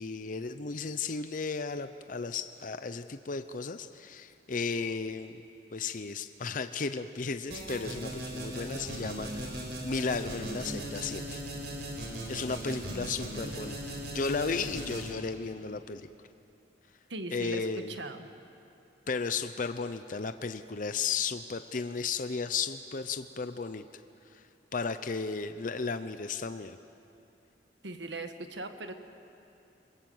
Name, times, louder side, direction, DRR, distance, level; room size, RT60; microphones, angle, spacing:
voice 1, 0.0-5.4 5.7-11.4 12.3-16.1 17.3-17.9 19.1-23.8 24.3-24.4 24.7-26.8, left 4 dB, 50° left, 10 dB, 0.6 m, -34 dB
sound 1, 7.5-15.1, right 1 dB, 70° right, 5.2 m, -38 dB
voice 2, 17.1-18.3 27.8-28.9, right 2 dB, 90° right, 7 dB, 1.6 m, -39 dB
28.0 x 22.0 x 7.9 m, 2.7 s
head